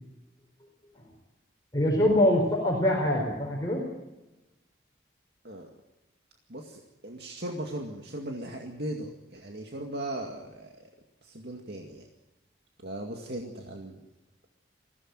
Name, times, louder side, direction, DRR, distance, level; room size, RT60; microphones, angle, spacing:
voice 1, 1.7-3.8, left 1 dB, 20° left, -1 dB, 4.5 m, -24 dB
voice 2, 6.5-10.9 11.2-12.1 12.8-14.0, right 1 dB, 65° right, 2 dB, 2.2 m, -38 dB
20.5 x 16.5 x 9.0 m, 1.0 s
head